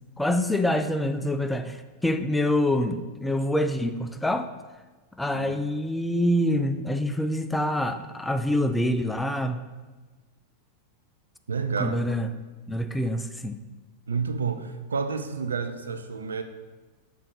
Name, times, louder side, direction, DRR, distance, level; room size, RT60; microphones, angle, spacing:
voice 1, 0.2-4.5 5.2-9.6 11.8-12.3 12.7-13.6, left 1 dB, 5° left, 9 dB, 0.3 m, -26 dB
voice 2, 11.5-12.1 14.1-16.4, right 5 dB, 70° right, 8 dB, 0.4 m, -30 dB
5.7 x 3.8 x 4.7 m, 1.2 s
figure-of-eight pair, 90°, 0 cm